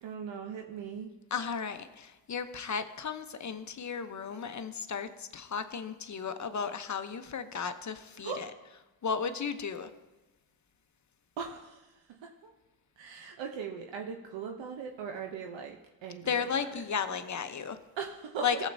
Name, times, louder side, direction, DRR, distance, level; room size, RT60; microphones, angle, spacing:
voice 1, 0.0-1.1 8.2-8.4 11.4-12.5 13.0-15.8 16.0-16.8 18.0-18.6, right 6 dB, 65° right, 3 dB, 0.9 m, -40 dB
voice 2, 1.3-9.9 16.3-17.8 18.4-18.7, left 6 dB, 35° left, 9 dB, 0.9 m, -34 dB
15.5 x 7.4 x 2.7 m, 1.1 s
supercardioid pair, 50°, 48 cm